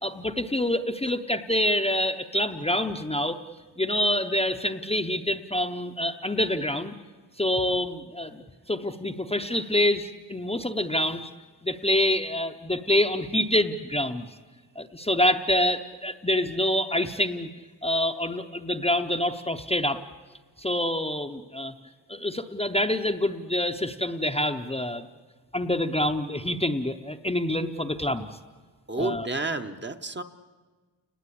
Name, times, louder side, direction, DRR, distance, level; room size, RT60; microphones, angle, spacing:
voice 1, 0.0-3.4 3.8-6.9 7.4-11.3 11.6-14.3 14.8-17.5 17.8-20.0 20.6-21.7 22.1-25.1 25.5-28.3 29.0-29.3, left 1 dB, 15° left, 5 dB, 0.7 m, -26 dB
voice 2, 28.9-30.2, right 2 dB, 25° right, 7 dB, 0.9 m, -30 dB
30.0 x 19.5 x 8.5 m, 1.4 s
wide cardioid pair, 160°, 42 cm